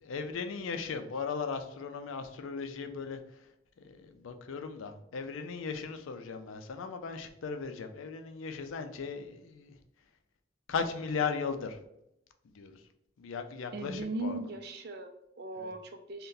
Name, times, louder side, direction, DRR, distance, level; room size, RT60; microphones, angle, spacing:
voice 1, 0.0-3.2 3.8-9.8 10.7-11.8 12.5-12.7 13.2-14.4 15.6-15.7, left 5 dB, 85° left, 0.4 m, -37 dB
voice 2, 13.7-16.3, right 2 dB, 50° right, 0.4 m, -38 dB
2.6 x 2.2 x 3.7 m
head